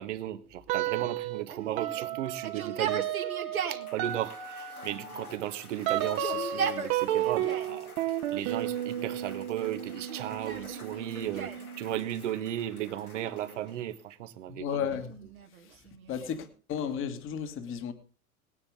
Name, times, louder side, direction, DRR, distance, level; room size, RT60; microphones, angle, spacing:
voice 1, 0.0-3.1 3.7-7.9 8.3-14.8, right 12 dB, 55° right, 1.4 m, -35 dB
sound 1, 0.7-1.4 1.8-12.1, right 11 dB, 40° right, 1.4 m, -33 dB
Yell, 1.5-3.9 4.8-5.5 5.9-7.8 8.5-9.2 9.9-11.7 13.1-13.9 14.7-16.5, right 7 dB, 75° right, 2.1 m, -38 dB
Cheering / Applause / Crowd, 3.6-14.1, left 3 dB, 85° left, 3.0 m, -51 dB
voice 2, 14.5-15.2 15.6-17.9, left 8 dB, 30° left, 1.8 m, -34 dB
19.0 x 9.9 x 3.6 m
figure-of-eight pair, 95°, 43 cm